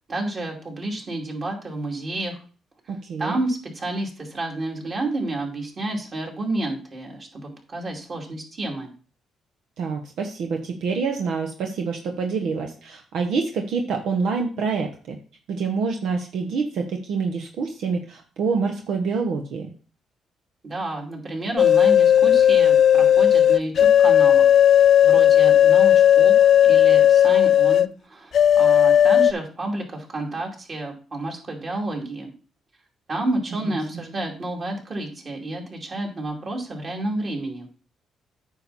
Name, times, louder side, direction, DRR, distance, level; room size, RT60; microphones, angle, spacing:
voice 1, 0.1-2.4 3.2-8.9 20.6-32.3 33.1-37.7, right 2 dB, 40° right, 1 dB, 2.7 m, -30 dB
voice 2, 2.9-3.4 9.8-15.2 15.5-19.7 33.6-34.0, right 5 dB, 75° right, 3 dB, 1.0 m, -27 dB
sound 1, 21.6-27.9 28.3-29.3, left 10 dB, 60° left, 0.3 m, -15 dB
9.2 x 5.7 x 4.1 m, 0.38 s
cardioid pair, 90°, 0 cm